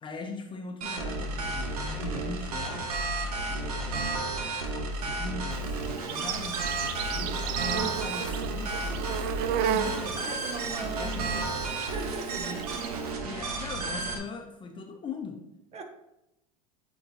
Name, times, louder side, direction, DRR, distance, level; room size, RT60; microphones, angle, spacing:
voice 1, 0.0-2.9 3.5-4.3 4.7-6.7 7.1-9.1 9.5-10.3 10.6-11.5 12.4-12.7 13.2-15.4, left 3 dB, 25° left, 4 dB, 0.8 m, -40 dB
sound 1, 0.8-14.2, right 2 dB, 85° right, 1.0 m, -32 dB
Insect, 5.5-13.1, right 9 dB, 55° right, 0.5 m, -34 dB
voice 2, 10.3-11.5 11.8-12.7 15.7-15.8, right 4 dB, 35° right, 5 dB, 1.2 m, -39 dB
8.9 x 4.5 x 2.8 m, 0.90 s
hypercardioid pair, 95°, 19 cm